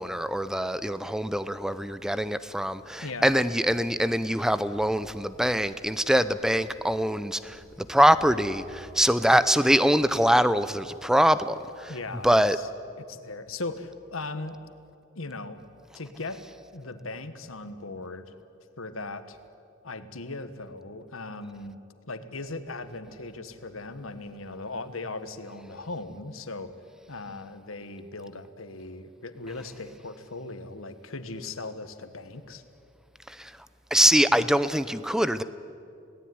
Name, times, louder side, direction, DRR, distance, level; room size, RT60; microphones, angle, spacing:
voice 1, 0.0-11.9 12.2-12.6 33.3-33.5 33.9-35.4, equal, 5° right, 14 dB, 0.6 m, -23 dB
sound 1, 3.3-9.2, right 1 dB, 90° right, 4.7 m, -54 dB
voice 2, 11.9-12.7 13.1-14.6 15.1-15.6 15.9-16.4 16.7-18.3 18.8-19.4 19.8-21.8 22.1-26.7 27.1-32.6, left 3 dB, 85° left, 10 dB, 1.5 m, -38 dB
27.0 x 18.0 x 9.6 m, 2.6 s
head